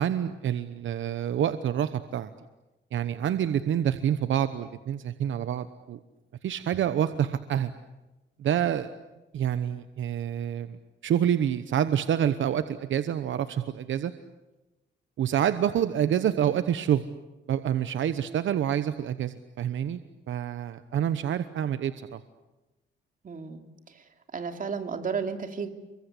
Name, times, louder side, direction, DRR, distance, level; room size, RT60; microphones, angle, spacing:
voice 1, 0.0-2.3 2.9-6.0 6.4-7.7 8.4-8.9 9.3-14.1 15.2-17.0 17.5-20.0 20.3-22.2, right 9 dB, 70° right, 11 dB, 1.1 m, -27 dB
voice 2, 23.2-23.6 23.9-24.0 24.3-25.7, right 5 dB, 40° right, 6 dB, 2.9 m, -32 dB
30.0 x 23.5 x 8.5 m, 1.1 s
cardioid pair, 120°, 20 cm